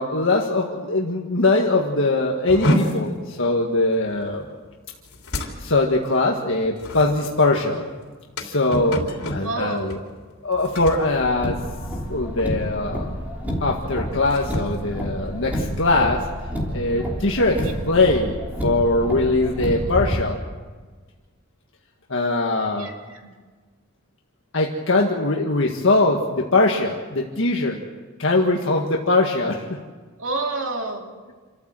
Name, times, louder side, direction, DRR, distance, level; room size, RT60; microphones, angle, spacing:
voice 1, 0.0-4.5 5.6-7.9 8.4-9.0 9.3-10.0 10.4-11.6 12.1-13.2 13.6-16.3 16.7-20.4 22.1-22.9 24.5-27.8 28.2-29.8, left 2 dB, 60° left, 0 dB, 1.8 m, -21 dB
sound 1, 2.5-12.1 12.4-12.8 13.1-13.4 14.0-15.9, equal, 90° left, 3.3 m, -30 dB
voice 2, 9.4-10.0 17.6-17.7 22.8-23.3 30.2-31.1, right 3 dB, 65° right, 2 dB, 2.9 m, -29 dB
Car, 11.2-20.2, equal, 10° right, 3.2 m, -29 dB
27.5 x 14.0 x 7.7 m, 1.4 s
head